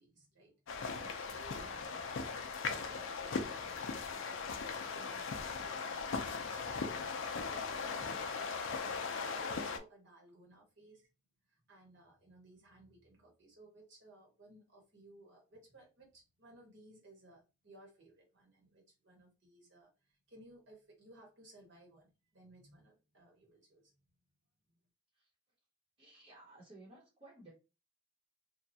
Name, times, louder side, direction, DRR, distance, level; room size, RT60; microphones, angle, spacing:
voice 1, 0.0-11.1 11.5-23.9, right 1 dB, 55° right, -1 dB, 1.3 m, -60 dB
sound 1, 0.7-9.8, left 5 dB, 60° left, 0.4 m, -39 dB
voice 2, 26.0-27.5, right 2 dB, 25° right, -7 dB, 1.0 m, -56 dB
2.8 x 2.3 x 2.7 m, 0.28 s
head